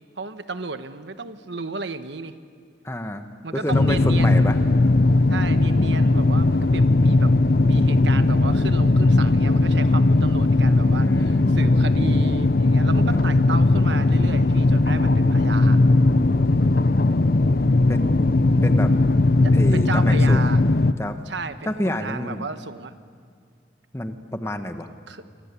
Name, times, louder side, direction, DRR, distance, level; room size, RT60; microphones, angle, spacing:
voice 1, 0.2-2.3 3.4-4.5 5.3-7.3 7.6-15.8 19.4-20.6 21.3-22.9 25.1-25.4, right 3 dB, 70° right, 10 dB, 1.2 m, -33 dB
voice 2, 2.8-4.6 11.0-11.7 13.1-13.2 17.9-18.2 18.6-18.9 19.5-20.5 21.0-21.2 21.6-22.4 23.9-24.9, left 1 dB, 15° left, 7 dB, 1.3 m, -29 dB
sound 1, 3.7-20.9, left 2 dB, 50° left, 0.7 m, -18 dB
27.5 x 25.0 x 8.4 m, 2.1 s
head